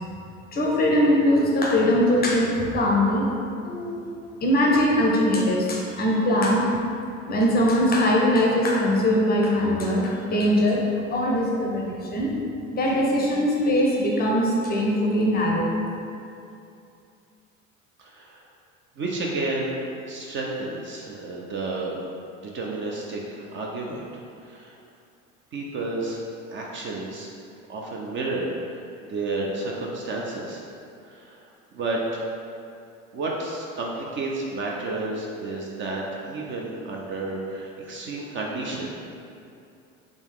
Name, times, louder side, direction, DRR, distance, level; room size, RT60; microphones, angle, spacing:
voice 1, 0.5-3.3 3.6-4.0 4.4-6.6 7.3-12.3 12.7-15.7, left 1 dB, 25° left, -2 dB, 0.6 m, -21 dB
voice 2, 18.0-18.4 19.0-22.0 22.4-24.1 24.4-24.7 25.5-26.2 26.5-27.3 27.7-30.6 31.1-32.3 33.1-38.9, right 2 dB, 30° right, -2 dB, 0.5 m, -31 dB
3.5 x 2.4 x 3.5 m, 2.6 s
hypercardioid pair, 70°, 39 cm